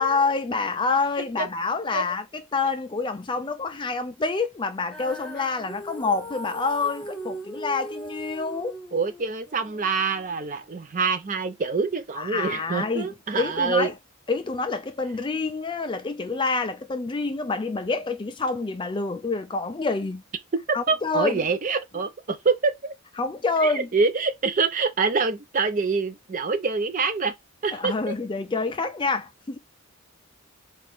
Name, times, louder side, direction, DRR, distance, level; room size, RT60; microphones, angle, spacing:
voice 1, 0.0-8.8 12.2-13.1 13.4-13.9 14.3-20.2 20.7-21.4 23.2-23.9 27.7-29.6, left 4 dB, 20° left, 0.4 m, -27 dB
Female singing, 4.9-11.1, right 1 dB, 5° left, 0.8 m, -40 dB
voice 2, 8.9-13.9 20.7-22.9 23.6-27.3 27.6-28.1, right 4 dB, 35° right, 0.5 m, -26 dB
4.3 x 2.5 x 3.4 m
head